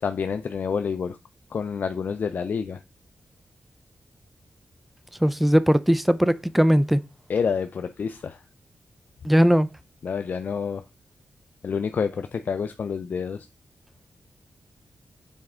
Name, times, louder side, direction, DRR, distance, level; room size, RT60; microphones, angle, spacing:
voice 1, 0.0-1.2 1.5-2.8 7.3-8.4 10.0-10.8 11.6-13.5, left 6 dB, 65° left, 0.5 m, -28 dB
voice 2, 5.2-7.0 9.2-9.7, equal, 5° right, 0.4 m, -19 dB
7.3 x 4.3 x 3.6 m
cardioid pair, 85°, 3 cm